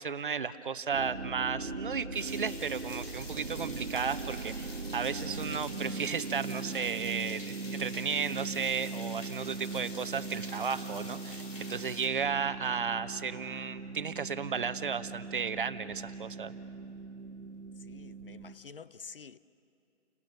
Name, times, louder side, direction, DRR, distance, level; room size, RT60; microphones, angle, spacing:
voice 1, 0.0-11.4 11.7-16.5, right 6 dB, 45° right, 0.8 m, -34 dB
sound 1, 0.9-18.5, right 4 dB, 85° right, 1.4 m, -40 dB
sound 2, 2.1-12.1, left 2 dB, 85° left, 4.8 m, -47 dB
voice 2, 17.9-19.4, left 5 dB, 50° left, 0.5 m, -48 dB
29.5 x 18.5 x 6.6 m
hypercardioid pair, 160°, 36 cm